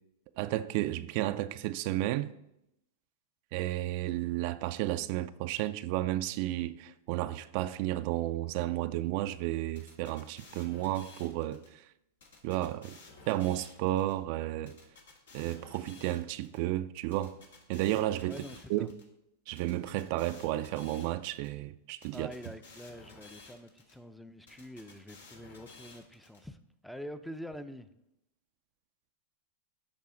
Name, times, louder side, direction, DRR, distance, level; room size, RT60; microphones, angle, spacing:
voice 1, 0.4-2.3 3.5-11.9 12.4-13.0 13.3-14.8 15.3-17.4 17.7-18.4 18.7-18.9 19.5-22.3, right 15 dB, 55° right, 0.3 m, -32 dB
sound 1, 9.7-11.7 12.2-14.1 14.7-16.6 17.1-19.0 19.6-21.5 22.0-23.9 24.5-26.4, left 3 dB, 85° left, 1.8 m, -54 dB
voice 2, 18.3-18.9 22.1-27.9, equal, ahead, 0.5 m, -46 dB
11.5 x 4.1 x 3.8 m
hypercardioid pair, 120°, 0 cm